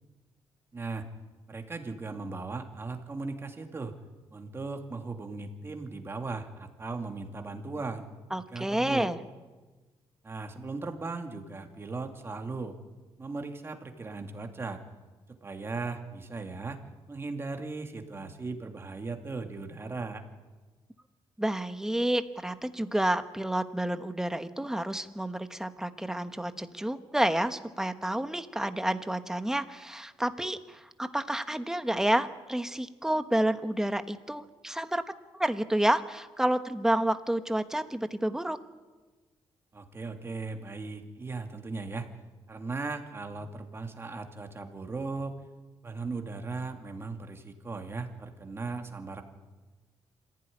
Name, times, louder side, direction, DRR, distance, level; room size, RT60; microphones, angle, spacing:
voice 1, 0.7-1.1 1.5-4.0 4.3-8.1 8.5-9.1 10.2-12.8 13.2-14.8 15.3-16.8 17.1-20.2 39.7-42.1 42.5-45.3 45.8-49.2, right 3 dB, 25° right, 4 dB, 2.5 m, -37 dB
voice 2, 8.3-9.2 21.4-35.0 35.3-38.6, right 1 dB, 5° right, 9 dB, 1.1 m, -29 dB
26.5 x 15.5 x 10.0 m, 1.3 s
cardioid pair, 140°, 10 cm